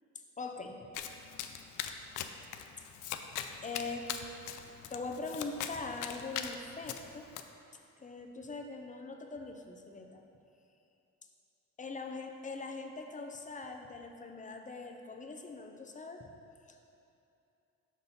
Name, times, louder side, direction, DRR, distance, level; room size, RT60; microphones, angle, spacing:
voice 1, 0.4-0.8 3.6-4.1 4.9-7.2 8.0-10.2 11.8-16.2, left 3 dB, 25° left, 3 dB, 0.6 m, -42 dB
Domestic sounds home sounds, 0.9-7.4, left 9 dB, 85° left, 0.5 m, -41 dB
5.9 x 5.4 x 4.1 m, 2.8 s
cardioid pair, 90°, 30 cm